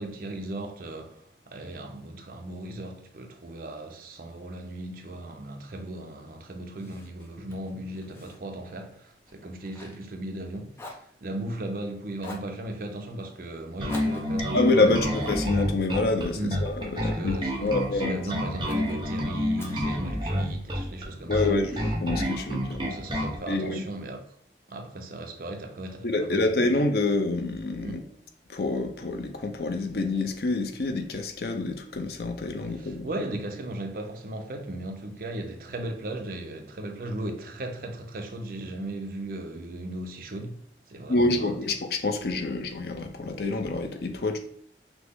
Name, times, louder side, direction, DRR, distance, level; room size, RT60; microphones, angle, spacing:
voice 1, 0.0-15.1 16.3-16.6 16.9-21.6 22.8-24.2 24.7-26.5 27.8-28.0 32.8-40.6 40.9-41.5, right 1 dB, 55° right, 0.6 m, -37 dB
Fire, 6.8-10.5 10.7-11.8 12.2-12.6 13.9-16.3 16.8-17.9 18.6-19.0 19.6-20.7, left 2 dB, 15° left, 0.6 m, -48 dB
Bass guitar, 13.8-23.4, equal, 25° right, 0.8 m, -29 dB
voice 2, 14.5-18.2 21.3-23.0 23.5-23.8 26.0-28.0 28.5-33.1 41.1-44.4, left 2 dB, 60° left, 0.5 m, -27 dB
6.0 x 2.0 x 3.5 m
head